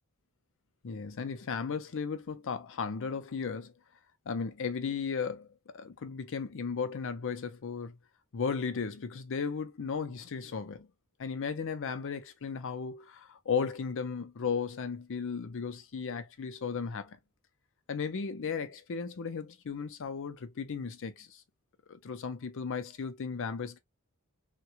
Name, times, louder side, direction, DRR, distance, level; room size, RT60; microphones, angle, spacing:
voice 1, 0.8-3.7 4.3-5.5 5.7-8.0 8.3-10.9 11.2-17.2 17.9-21.4 21.9-23.8, left 5 dB, 60° left, 0.5 m, -35 dB
3.5 x 2.2 x 2.8 m
head